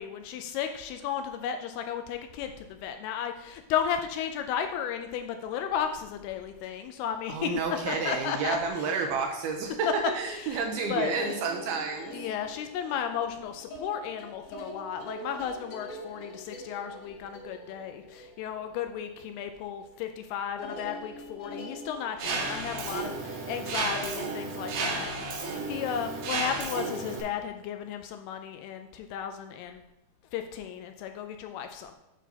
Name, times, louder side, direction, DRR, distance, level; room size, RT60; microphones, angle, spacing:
voice 1, 0.0-7.6 7.9-8.6 9.0-9.1 10.3-10.6 10.9-11.1 12.1-29.8 30.3-32.0, left 8 dB, 85° left, 7 dB, 2.4 m, -34 dB
voice 2, 7.3-9.9 10.1-12.2, right 5 dB, 80° right, 2 dB, 2.3 m, -30 dB
sound 1, 10.7-19.5 19.8-20.2 20.6-24.2, left 1 dB, 65° left, 2.1 m, -44 dB
Mechanisms, 22.2-27.2, right 3 dB, 65° right, 2.2 m, -33 dB
9.1 x 6.0 x 2.8 m, 0.93 s
omnidirectional pair, 4.8 m